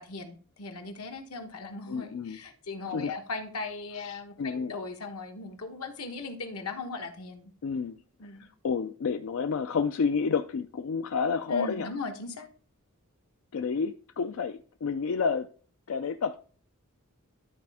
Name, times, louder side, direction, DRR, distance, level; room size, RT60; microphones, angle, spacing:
voice 1, 0.0-7.5 8.2-8.5 11.5-12.5, left 3 dB, 90° left, 1.2 m, -38 dB
voice 2, 1.9-2.4 2.9-3.1 3.9-4.7 7.6-8.0 8.4-11.9 13.5-15.5 15.9-16.4, left 5 dB, 65° left, 0.4 m, -30 dB
12.0 x 4.2 x 3.5 m
head